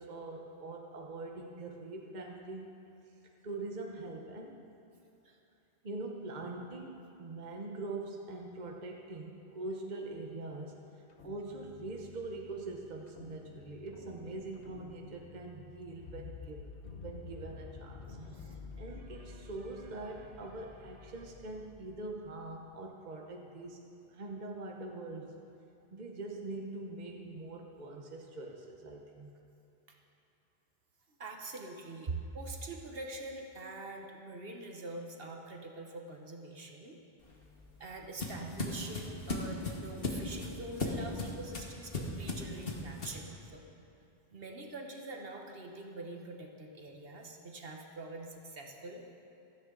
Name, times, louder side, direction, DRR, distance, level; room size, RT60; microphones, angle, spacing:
voice 1, 0.0-2.8 3.4-4.6 5.8-10.8 11.2-16.6 17.0-18.0 18.4-18.5 18.8-23.8 24.1-25.3 25.9-29.3, right 2 dB, 45° right, 1 dB, 1.1 m, -43 dB
sound 1, 11.1-22.4, left 4 dB, 85° left, 1.4 m, -51 dB
voice 2, 18.1-18.6 29.9-30.0 31.2-37.0 37.8-43.6 44.3-49.1, right 2 dB, 65° right, 1 dB, 1.4 m, -45 dB
sound 2, 37.2-43.3, left 2 dB, 60° left, 1.7 m, -38 dB
16.0 x 13.5 x 3.9 m, 2.8 s
omnidirectional pair, 1.1 m